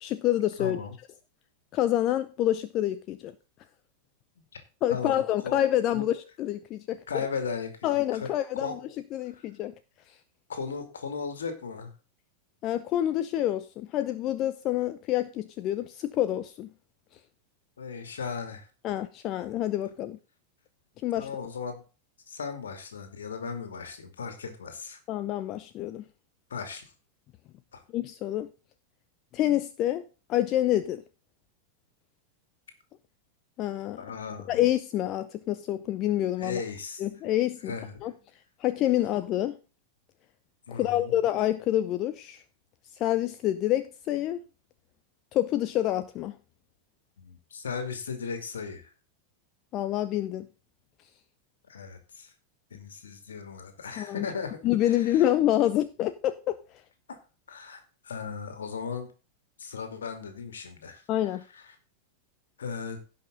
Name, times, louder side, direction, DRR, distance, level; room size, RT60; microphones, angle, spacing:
voice 1, 0.0-0.8 1.7-3.3 4.8-7.3 7.8-8.8 9.1-9.7 10.1-10.2 12.6-16.7 18.8-20.2 21.0-21.3 25.1-26.0 27.9-28.5 29.3-30.0 30.3-31.0 33.6-34.0 34.5-36.6 37.0-37.7 38.0-38.1 38.6-39.6 40.7-42.4 43.0-44.4 45.3-46.4 49.7-50.5 54.0-54.3 54.6-56.6 61.1-61.4, left 13 dB, 35° left, 0.6 m, -27 dB
voice 2, 0.6-0.9 4.9-5.6 5.9-6.1 7.1-8.8 9.3-9.4 10.5-11.9 17.8-18.7 21.2-21.8 22.3-25.0 26.5-26.8 27.7-27.8 34.0-34.6 36.4-37.0 37.7-38.0 40.7-41.1 47.2-48.9 51.7-52.3 52.7-55.2 57.1-57.2 57.5-59.1 59.6-61.7 62.6-63.0, left 5 dB, 65° left, 2.5 m, -37 dB
16.5 x 5.8 x 3.8 m
figure-of-eight pair, 90°, 0 cm